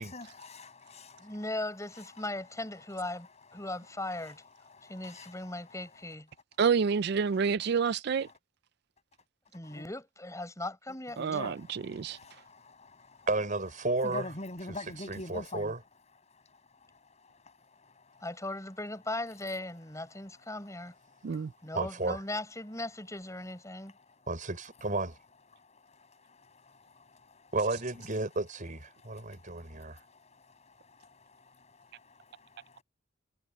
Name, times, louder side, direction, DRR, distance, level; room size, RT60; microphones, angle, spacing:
voice 1, 0.0-1.4 4.6-5.8 9.6-9.8 11.2-13.3 14.0-15.7 16.9-17.0 17.3-18.2 21.1-21.4 25.5-27.5 29.1-32.8, left 2 dB, 35° left, 7.8 m, -47 dB
voice 2, 1.2-3.3 3.5-4.4 4.9-6.3 9.5-11.2 18.2-20.9 21.6-23.9, left 2 dB, 15° left, 7.2 m, -38 dB
voice 3, 6.6-8.3 11.2-12.2 21.2-21.5, right 6 dB, 60° right, 0.4 m, -28 dB
voice 4, 13.3-14.3 15.1-15.8 21.7-22.2 24.3-25.1 27.5-30.0, right 2 dB, 45° right, 5.1 m, -32 dB
head